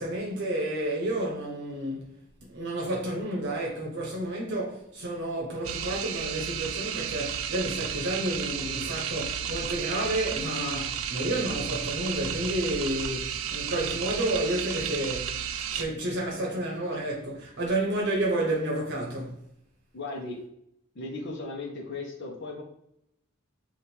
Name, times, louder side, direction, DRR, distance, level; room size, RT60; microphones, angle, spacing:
voice 1, 0.0-2.1 2.5-15.4 15.7-19.4, right 1 dB, 60° right, 0.8 m, -30 dB
sound 1, 5.6-15.8, right 8 dB, 80° right, 0.4 m, -33 dB
voice 2, 19.9-20.4 20.9-22.6, left 3 dB, 60° left, 0.7 m, -36 dB
3.5 x 2.5 x 4.3 m
head